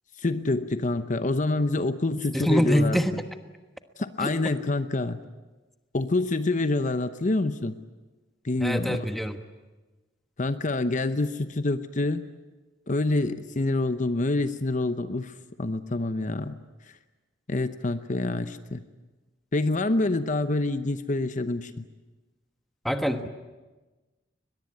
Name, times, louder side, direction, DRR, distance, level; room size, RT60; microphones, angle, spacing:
voice 1, 0.2-3.0 4.0-5.2 5.9-7.8 8.4-9.0 10.4-12.2 12.9-16.6 17.5-18.8 19.5-21.8, left 2 dB, 40° left, 11 dB, 0.8 m, -27 dB
voice 2, 2.3-3.2 4.2-4.3 8.6-9.4 22.8-23.3, equal, ahead, 7 dB, 1.3 m, -24 dB
22.5 x 21.0 x 9.7 m, 1.2 s
head